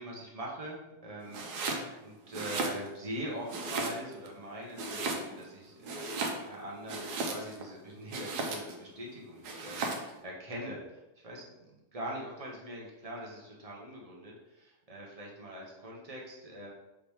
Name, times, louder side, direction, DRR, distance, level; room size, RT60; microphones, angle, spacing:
voice 1, 0.0-6.1 6.4-16.7, right 1 dB, 30° right, -3 dB, 0.7 m, -43 dB
Domestic sounds home sounds, 1.3-1.9 2.3-3.1 3.5-4.3 4.7-5.5 5.8-7.7 8.1-8.8 9.4-10.1, right 3 dB, 85° right, 1.2 m, -35 dB
4.8 x 3.1 x 3.4 m, 0.97 s
omnidirectional pair, 1.7 m